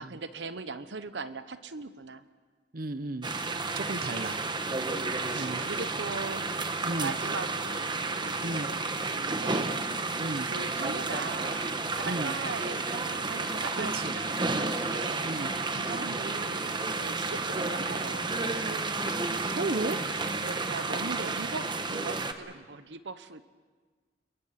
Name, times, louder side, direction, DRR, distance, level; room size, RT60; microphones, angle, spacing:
voice 1, 0.0-2.2 4.8-6.5 7.0-9.7 10.4-15.3 15.7-18.3 20.4-23.4, right 4 dB, 80° right, 12 dB, 0.9 m, -40 dB
voice 2, 2.7-3.3 3.7-4.4 5.3-5.6 6.8-7.1 8.4-8.7 10.1-10.5 12.0-12.3 13.8-14.2 14.5-14.7 15.2-15.5 19.6-20.0, right 2 dB, 55° right, 11 dB, 0.9 m, -34 dB
sound 1, 3.2-22.3, right 3 dB, 25° right, 1.1 m, -31 dB
28.0 x 22.0 x 5.8 m, 1.4 s
head